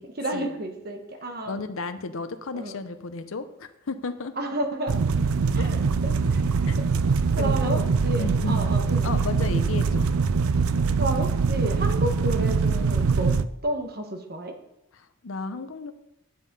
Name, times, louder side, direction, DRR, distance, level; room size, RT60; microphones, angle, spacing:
voice 1, 0.2-1.6 2.5-2.8 4.4-5.0 5.5-5.8 6.0-6.9 7.4-9.1 11.0-13.4 13.6-14.6, right 1 dB, 45° right, 4 dB, 1.4 m, -31 dB
voice 2, 1.5-4.3 5.6-5.7 6.7-6.8 7.4-8.8 9.0-10.1 14.9-15.9, left 3 dB, 75° left, 9 dB, 0.7 m, -34 dB
sound 1, 4.9-13.4, right 4 dB, 90° right, 0.5 m, -23 dB
10.5 x 7.4 x 5.4 m, 0.84 s
head